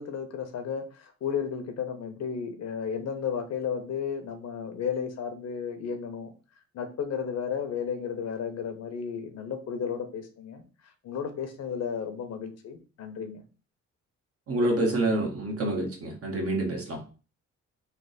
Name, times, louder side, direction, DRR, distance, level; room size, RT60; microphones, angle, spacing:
voice 1, 0.0-6.3 6.7-13.4, left 7 dB, 60° left, 7 dB, 0.7 m, -33 dB
voice 2, 14.5-17.0, right 1 dB, 50° right, 1 dB, 1.1 m, -27 dB
3.3 x 2.0 x 3.9 m, 0.35 s
cardioid pair, 90°, 30 cm